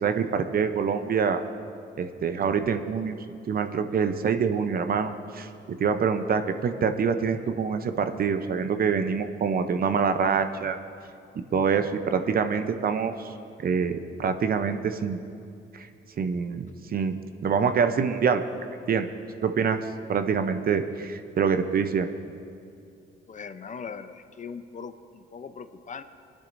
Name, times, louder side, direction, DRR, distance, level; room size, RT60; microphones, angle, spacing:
voice 1, 0.0-1.4 2.0-3.2 3.5-10.8 11.5-13.3 13.6-15.2 15.7-15.9 16.2-18.4 18.9-19.1 19.4-19.8 20.1-22.1, right 6 dB, 50° right, 8 dB, 0.7 m, -25 dB
voice 2, 23.3-26.0, left 6 dB, 40° left, 10 dB, 0.6 m, -40 dB
23.0 x 10.5 x 2.6 m, 2.5 s
cardioid pair, 90°, 20 cm